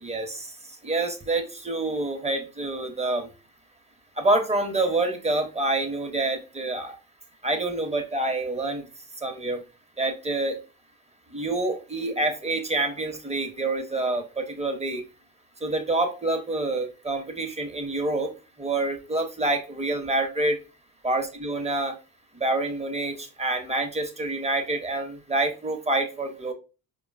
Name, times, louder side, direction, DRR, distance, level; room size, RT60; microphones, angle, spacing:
voice 1, 0.0-0.5 0.8-3.3 4.2-7.0 7.4-8.8 9.2-9.6 10.0-10.6 11.3-15.0 15.6-18.3 18.6-20.6 21.0-21.9 22.4-26.5, right 2 dB, 15° right, 5 dB, 0.9 m, -27 dB
4.9 x 2.2 x 2.4 m, 0.32 s
hypercardioid pair, 50°, 41 cm